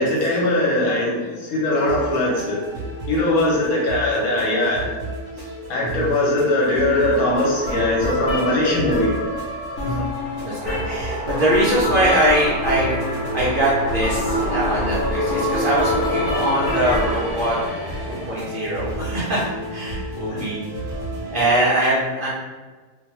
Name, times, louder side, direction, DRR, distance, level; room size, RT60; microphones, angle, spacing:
voice 1, 0.0-2.6 3.1-4.8 5.7-9.1 20.3-20.4, left 1 dB, 80° left, -4 dB, 1.2 m, -20 dB
sound 1, 1.7-21.5, right 1 dB, 30° right, 1.0 m, -34 dB
voice 2, 5.8-6.1 9.8-10.1 10.4-12.9 13.3-17.6 18.1-19.4 19.7-20.6 21.3-22.3, right 1 dB, 65° right, -8 dB, 0.5 m, -22 dB
sound 2, 7.1-17.1, equal, 60° left, 0.9 m, -27 dB
sound 3, 10.2-18.5, left 1 dB, 5° right, 0.7 m, -29 dB
2.5 x 2.2 x 2.9 m, 1.4 s
omnidirectional pair, 1.5 m